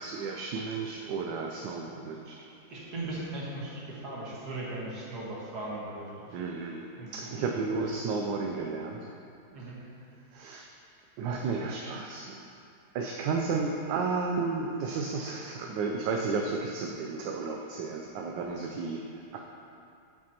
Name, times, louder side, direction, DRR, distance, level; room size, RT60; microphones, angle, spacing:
voice 1, 0.0-2.4 6.3-9.1 10.3-10.7 11.2-12.4 12.9-19.4, right 4 dB, 80° right, 1 dB, 1.3 m, -33 dB
voice 2, 2.7-6.3 7.0-7.4 9.5-9.8 11.3-12.0, right 2 dB, 60° right, -6 dB, 2.1 m, -38 dB
9.0 x 8.4 x 2.9 m, 2.5 s
omnidirectional pair, 2.0 m